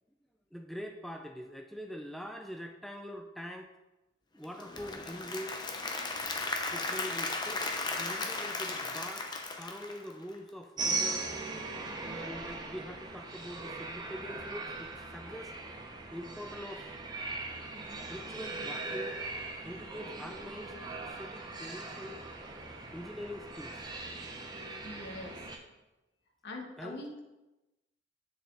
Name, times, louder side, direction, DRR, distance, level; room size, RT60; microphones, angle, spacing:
voice 1, 0.5-3.7 4.3-5.6 6.7-11.3 12.0-15.5 16.1-16.9 18.1-19.2 19.6-20.8 21.1-22.2 22.9-23.9 26.8-27.0, equal, ahead, 4 dB, 0.4 m, -44 dB
Applause / Crowd, 4.4-10.5, left 3 dB, 25° left, 0.8 m, -36 dB
sound 1, 10.8-25.6, right 3 dB, 20° right, 0.8 m, -39 dB
voice 2, 24.8-25.5 26.4-27.2, left 2 dB, 60° left, 1 dB, 1.4 m, -43 dB
8.3 x 6.6 x 3.9 m, 1.0 s
head